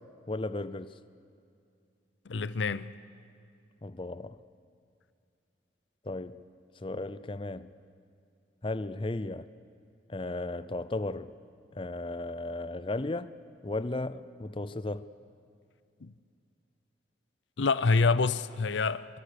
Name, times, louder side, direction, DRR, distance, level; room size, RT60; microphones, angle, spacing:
voice 1, 0.3-0.9 3.8-4.4 6.0-6.4 6.8-7.7 8.6-9.5 10.1-11.3 11.8-13.3 13.6-15.1, left 2 dB, 30° left, 0.5 m, -35 dB
voice 2, 2.3-2.9 16.0-16.1 17.6-19.1, left 4 dB, 80° left, 0.6 m, -26 dB
24.5 x 24.5 x 6.7 m
head